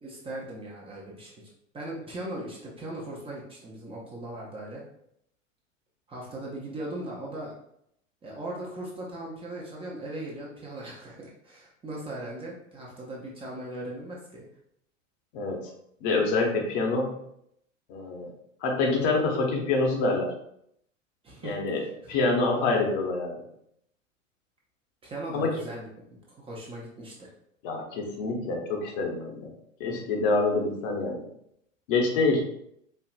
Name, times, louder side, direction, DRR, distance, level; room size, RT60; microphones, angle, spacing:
voice 1, 0.0-4.8 6.1-7.5 8.2-14.4 21.2-22.1 25.0-25.9 26.3-27.3, right 1 dB, 15° right, -3 dB, 0.7 m, -39 dB
voice 2, 16.0-17.2 17.9-18.3 18.6-20.3 21.4-21.8 22.1-23.3 25.3-25.5 27.6-29.5 29.8-31.2 31.9-32.4, left 3 dB, 40° left, 1 dB, 0.9 m, -26 dB
4.5 x 2.8 x 2.4 m, 0.73 s
figure-of-eight pair, 85°, 38 cm